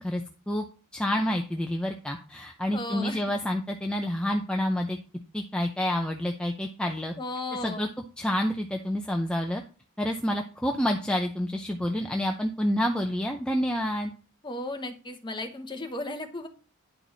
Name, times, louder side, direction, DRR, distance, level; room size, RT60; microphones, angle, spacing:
voice 1, 0.9-5.0 5.3-7.1 7.6-7.9 8.2-9.6 10.0-14.1, equal, 5° left, 2 dB, 0.5 m, -28 dB
voice 2, 2.7-3.2 7.2-7.9 14.4-16.5, left 2 dB, 20° left, 5 dB, 1.0 m, -35 dB
10.0 x 4.6 x 3.9 m, 0.37 s
head